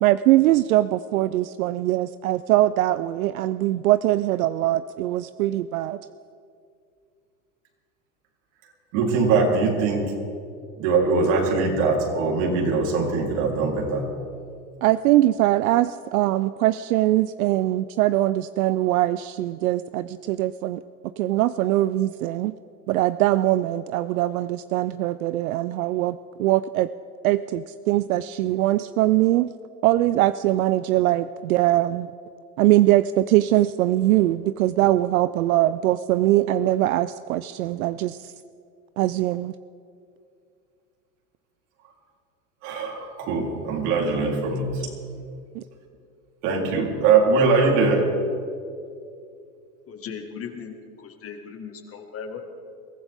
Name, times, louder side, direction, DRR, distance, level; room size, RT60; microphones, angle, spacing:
voice 1, 0.0-6.1 14.8-20.8 21.2-22.5 22.9-26.9 27.2-29.5 29.8-32.1 32.6-38.3 39.0-39.5 45.5-45.6, right 15 dB, 75° right, 14 dB, 0.5 m, -22 dB
voice 2, 8.9-10.0 10.8-14.1 42.6-44.8 46.4-48.1, right 4 dB, 60° right, -1 dB, 3.8 m, -21 dB
voice 3, 49.9-52.4, left 6 dB, 30° left, 5 dB, 1.8 m, -37 dB
22.5 x 15.0 x 3.6 m, 2.4 s
hypercardioid pair, 105°, 43 cm